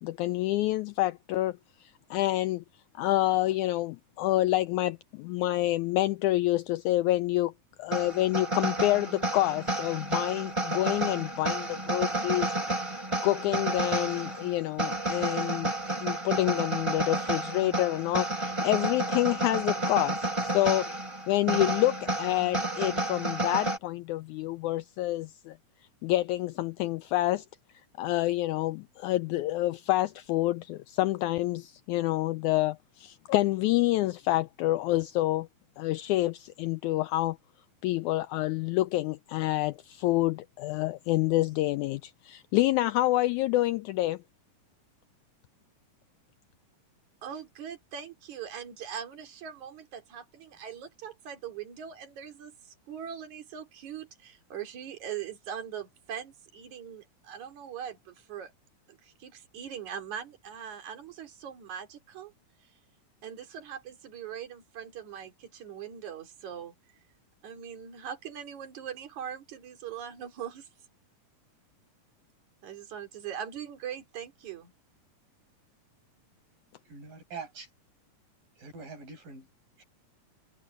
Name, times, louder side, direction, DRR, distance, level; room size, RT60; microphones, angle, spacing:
voice 1, 0.0-2.6 3.0-7.5 7.8-12.5 13.2-20.9 21.3-25.6 26.0-27.4 28.0-35.5 35.8-37.4 37.8-44.2, left 16 dB, 85° left, 1.7 m, -28 dB
sound 1, 7.9-23.8, right 2 dB, 10° right, 3.4 m, -31 dB
voice 2, 47.2-58.5 58.9-62.3 63.2-66.7 67.4-70.7 72.6-74.7, right 8 dB, 60° right, 4.4 m, -41 dB
voice 3, 76.9-77.7 78.6-79.5 79.8-79.9, right 4 dB, 80° right, 9.9 m, -43 dB
omnidirectional pair, 3.9 m